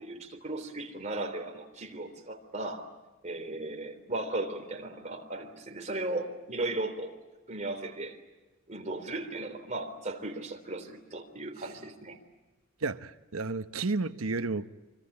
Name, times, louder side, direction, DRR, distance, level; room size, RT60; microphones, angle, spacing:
voice 1, 0.0-2.9 3.2-7.2 7.5-8.2 8.7-12.2, right 2 dB, 35° right, 3.5 m, -36 dB
voice 2, 12.8-14.7, right 3 dB, 80° right, 1.1 m, -32 dB
26.0 x 25.0 x 8.6 m
head